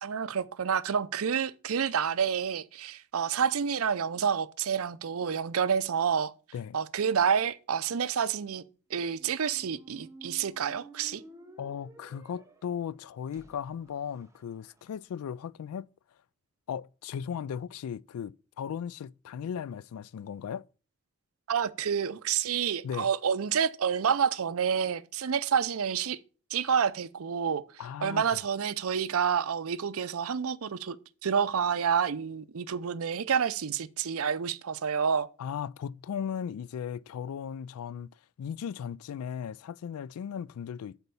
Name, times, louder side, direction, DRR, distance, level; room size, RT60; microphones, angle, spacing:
voice 1, 0.0-6.3 6.7-8.6 8.9-11.2 21.5-26.2 26.5-27.6 28.0-31.0 31.2-35.3, right 7 dB, 75° right, 0.5 m, -28 dB
Squeak, 9.0-15.0, right 2 dB, 15° right, 0.7 m, -54 dB
voice 2, 11.6-15.9 16.7-20.7 22.8-23.1 27.8-28.2 35.4-38.1 38.4-41.0, left 8 dB, 80° left, 0.3 m, -37 dB
8.0 x 4.3 x 6.9 m
head